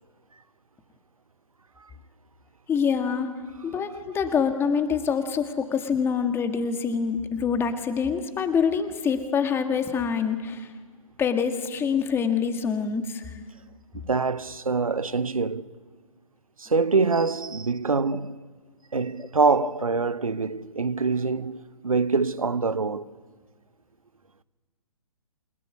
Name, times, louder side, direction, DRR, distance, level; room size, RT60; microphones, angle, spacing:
voice 1, 2.7-3.3 3.6-10.7 11.2-13.3, left 6 dB, 15° left, 1.8 m, -25 dB
voice 2, 14.0-15.7 16.6-18.4 18.9-23.1, right 4 dB, 80° right, 0.9 m, -25 dB
28.5 x 17.5 x 9.6 m
figure-of-eight pair, 125°, 18 cm